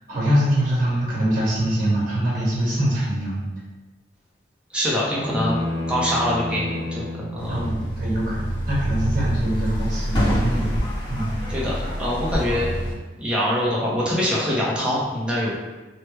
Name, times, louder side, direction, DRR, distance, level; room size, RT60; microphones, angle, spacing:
voice 1, 0.1-3.4 7.5-10.8 11.1-11.4, right 1 dB, 45° right, -6 dB, 1.3 m, -23 dB
voice 2, 4.7-7.7 11.5-12.7 13.2-15.6, equal, 5° right, -6 dB, 0.6 m, -24 dB
sound 1, 5.1-7.3, left 2 dB, 70° left, 0.8 m, -28 dB
sound 2, 7.4-12.9, equal, 25° left, 1.2 m, -26 dB
3.1 x 2.2 x 3.2 m, 1.2 s
head